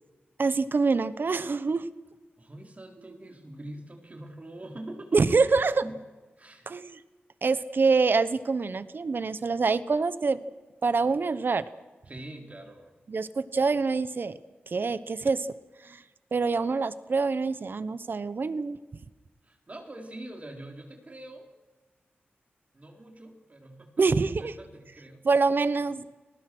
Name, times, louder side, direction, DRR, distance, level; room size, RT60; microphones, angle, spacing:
voice 1, 0.4-1.9 5.1-5.8 6.7-7.0 7.4-10.4 10.8-11.6 13.1-14.4 14.7-15.5 15.8-16.0 16.3-18.8 24.0-24.5 25.2-26.1, right 4 dB, 55° right, 15 dB, 1.1 m, -25 dB
voice 2, 2.4-6.0 6.4-6.8 12.1-12.9 19.4-21.5 22.7-24.0 24.4-25.2, right 1 dB, 35° right, 3 dB, 4.2 m, -44 dB
30.0 x 19.5 x 6.3 m, 1.3 s
cardioid pair, 65°, 4 cm